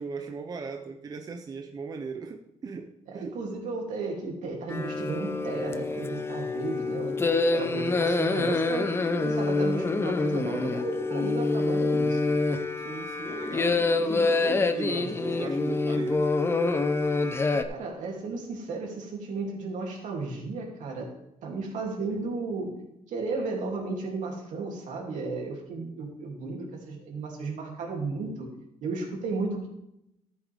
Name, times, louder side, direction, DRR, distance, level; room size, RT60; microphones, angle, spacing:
voice 1, 0.0-3.4 12.8-16.3, right 4 dB, 30° right, 5 dB, 0.7 m, -38 dB
voice 2, 3.1-8.9 9.2-12.5 15.0-15.4 17.6-21.1 21.4-22.8 23.1-28.5 28.8-29.7, right 3 dB, 70° right, -1 dB, 3.1 m, -34 dB
sound 1, 4.7-17.6, left 3 dB, 20° left, 0.6 m, -26 dB
14.0 x 8.3 x 3.6 m, 0.82 s
cardioid pair, 160°, 13 cm